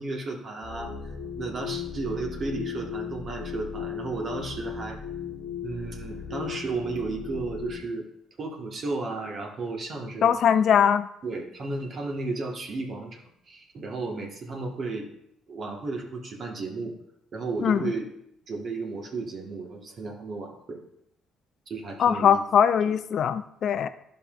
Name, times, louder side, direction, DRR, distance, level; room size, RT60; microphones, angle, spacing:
voice 1, 0.0-5.0 5.6-8.0 8.4-10.3 11.2-15.1 15.5-16.9 17.3-18.0 18.5-20.8 21.7-22.4, right 3 dB, 50° right, 1 dB, 1.4 m, -33 dB
sound 1, 0.6-7.8, left 8 dB, 85° left, 1.0 m, -36 dB
voice 2, 10.2-11.1 17.6-17.9 22.0-23.9, left 8 dB, 60° left, 12 dB, 0.4 m, -21 dB
11.5 x 5.5 x 2.5 m, 0.75 s
supercardioid pair, 80°, 0 cm